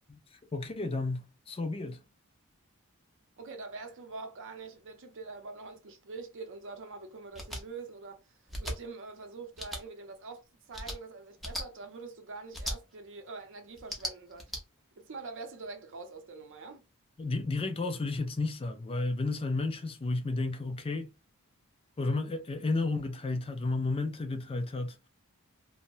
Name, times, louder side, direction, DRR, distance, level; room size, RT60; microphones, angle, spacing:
voice 1, 0.5-2.0 17.2-21.1 22.0-25.0, left 3 dB, 25° left, 0.4 m, -32 dB
voice 2, 3.4-14.5 15.0-16.8, right 4 dB, 55° right, 0.6 m, -44 dB
sound 1, 7.3-7.6 8.5-8.8 9.6-9.8 10.7-11.0 11.4-11.6 12.5-12.8 13.8-14.6, left 1 dB, ahead, 0.7 m, -37 dB
3.0 x 2.1 x 2.6 m
head